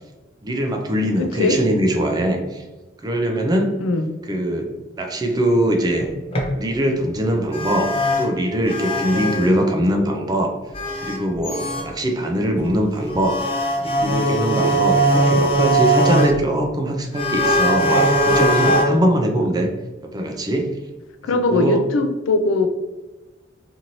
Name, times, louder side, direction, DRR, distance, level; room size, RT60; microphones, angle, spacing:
voice 1, 0.4-2.6 3.0-3.8 4.3-6.1 6.5-10.6 11.0-13.4 13.8-19.7 20.0-20.7 21.5-21.8, right 1 dB, 20° right, 3 dB, 0.4 m, -22 dB
voice 2, 1.2-1.6 3.8-4.1 21.2-22.7, left 2 dB, 85° left, 7 dB, 0.4 m, -20 dB
sound 1, 6.0-6.5 6.8-6.9 7.5-8.3 8.6-9.5 10.7-11.9 12.6-12.7 13.0-16.5 17.1-18.8, right 1 dB, 30° left, 0.5 m, -20 dB
2.9 x 2.6 x 2.6 m, 1.2 s
head